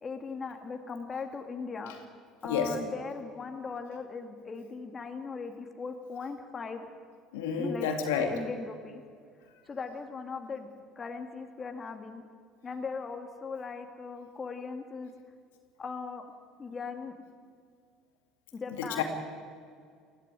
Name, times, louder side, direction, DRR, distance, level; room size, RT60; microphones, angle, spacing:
voice 1, 0.0-1.9 2.4-6.9 7.6-7.9 8.2-9.0 9.7-10.7 11.0-12.2 12.6-15.1 15.8-16.2 16.6-17.1 18.5-19.0, left 4 dB, 30° left, 5 dB, 2.5 m, -39 dB
voice 2, 7.3-8.3 18.8-19.0, left 7 dB, 80° left, 4 dB, 2.3 m, -29 dB
20.5 x 15.0 x 9.4 m, 2.1 s
hypercardioid pair, 70°, 0 cm